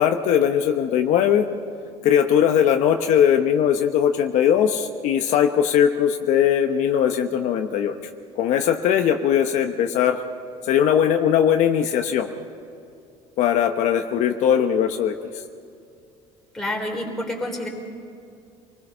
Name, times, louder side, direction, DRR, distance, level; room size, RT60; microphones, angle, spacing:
voice 1, 0.0-1.5 2.0-8.0 8.4-10.2 10.6-12.3 13.4-15.1, left 9 dB, 65° left, 5 dB, 1.0 m, -20 dB
voice 2, 16.5-17.7, left 1 dB, 5° left, -1 dB, 3.8 m, -28 dB
27.5 x 20.0 x 5.6 m, 2.5 s
cardioid pair, 140°, 13 cm